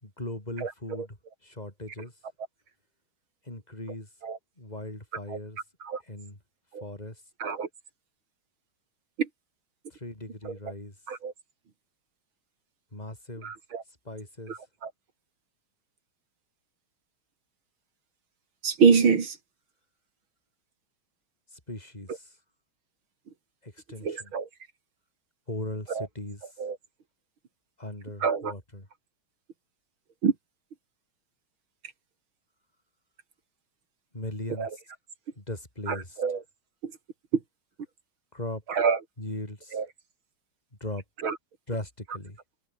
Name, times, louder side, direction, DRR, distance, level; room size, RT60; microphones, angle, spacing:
voice 1, 0.0-1.2 1.4-2.1 3.4-4.1 4.6-5.6 6.0-6.4 6.8-7.2 9.9-10.9 12.9-13.5 14.0-14.6 21.5-22.4 23.6-24.3 25.5-26.5 27.8-28.9 34.1-34.8 35.4-36.2 38.3-38.6 39.2-39.8 40.8-41.0 41.7-42.4, left 1 dB, 15° left, 5.6 m, -38 dB
voice 2, 13.4-13.8 14.5-14.9 18.6-19.4 24.0-24.5 25.9-26.1 26.6-26.8 28.2-28.5 30.2-30.3 34.6-34.7 35.9-36.4 36.8-36.9 38.7-39.0 39.7-39.8 41.2-41.4, right 6 dB, 65° right, 3.4 m, -25 dB
omnidirectional pair, 2.4 m